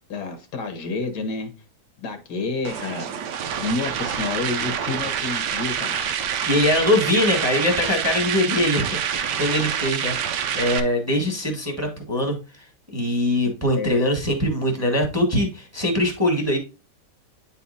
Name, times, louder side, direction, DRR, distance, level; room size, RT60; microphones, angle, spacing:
voice 1, 0.1-1.5 2.0-3.1 3.6-6.0 13.8-14.0, left 3 dB, 75° left, 1.6 m, -29 dB
sound 1, 2.6-10.8, right 8 dB, 90° right, 1.3 m, -27 dB
voice 2, 6.5-12.6 12.9-16.6, left 1 dB, 10° right, 1.3 m, -22 dB
9.1 x 4.2 x 2.5 m
omnidirectional pair, 1.8 m